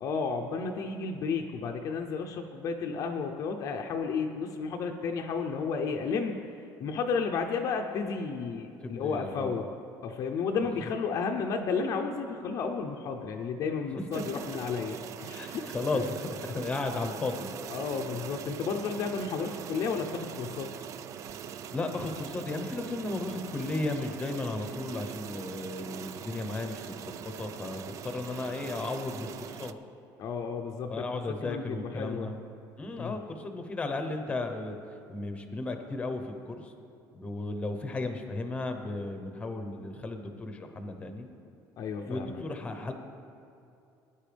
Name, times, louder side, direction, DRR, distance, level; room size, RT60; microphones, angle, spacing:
voice 1, 0.0-6.4 6.8-9.7 10.0-15.6 15.9-16.1 17.7-20.7 30.2-32.3 33.0-33.2 41.8-42.4, left 5 dB, 45° left, 3 dB, 0.6 m, -32 dB
voice 2, 8.8-9.6 10.8-10.9 15.3-17.5 21.7-29.7 30.9-32.3 32.8-34.7 35.1-36.7 37.1-41.3 42.1-42.9, left 2 dB, 15° left, 7 dB, 0.9 m, -35 dB
sound 1, 14.1-29.7, right 8 dB, 40° right, 0.4 m, -42 dB
18.5 x 9.9 x 3.4 m, 2.6 s
cardioid pair, 160°, 8 cm